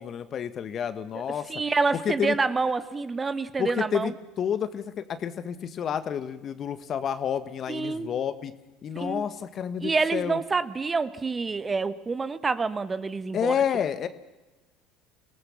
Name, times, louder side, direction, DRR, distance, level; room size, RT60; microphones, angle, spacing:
voice 1, 0.0-1.5 1.9-2.4 3.6-8.5 8.8-10.4 13.3-14.1, left 8 dB, 45° left, 12 dB, 1.5 m, -30 dB
voice 2, 1.5-4.1 7.7-8.1 8.9-9.2 9.8-13.5, right 4 dB, 25° right, 13 dB, 1.3 m, -27 dB
25.0 x 18.0 x 7.3 m, 1.1 s
hypercardioid pair, 70°, 0 cm